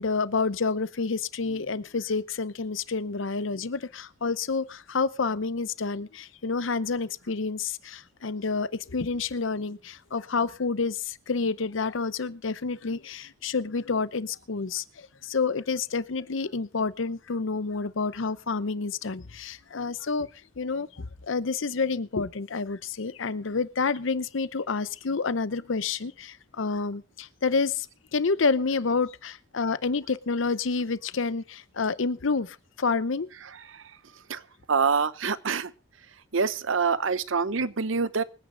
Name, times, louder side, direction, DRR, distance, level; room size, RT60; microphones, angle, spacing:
voice 1, 0.0-20.3 20.6-27.9 28.1-33.3, left 4 dB, 70° left, 0.7 m, -29 dB
voice 2, 34.7-35.7 36.3-38.2, right 5 dB, 75° right, 0.8 m, -25 dB
24.5 x 9.6 x 3.8 m
head